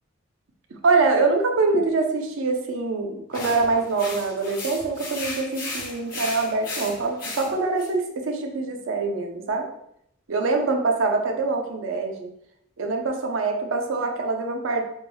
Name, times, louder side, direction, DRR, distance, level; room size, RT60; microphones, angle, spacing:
voice 1, 0.8-9.7 10.3-12.3 12.8-14.8, right 3 dB, 75° right, 3 dB, 0.5 m, -24 dB
sound 1, 3.3-7.9, left 2 dB, 45° left, 1.2 m, -35 dB
3.5 x 2.2 x 3.0 m, 0.74 s
head